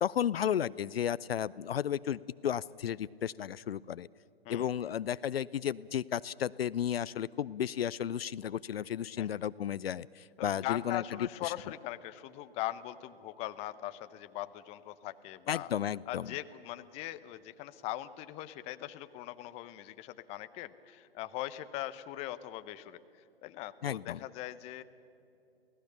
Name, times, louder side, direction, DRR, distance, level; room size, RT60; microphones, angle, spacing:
voice 1, 0.0-4.1 4.5-11.5 15.5-16.3 23.8-24.2, left 9 dB, 70° left, 19 dB, 0.5 m, -33 dB
voice 2, 10.4-15.7 16.1-23.0 23.4-24.8, left 14 dB, 20° left, 12 dB, 0.7 m, -40 dB
27.5 x 17.5 x 6.8 m, 2.8 s
figure-of-eight pair, 125°, 31 cm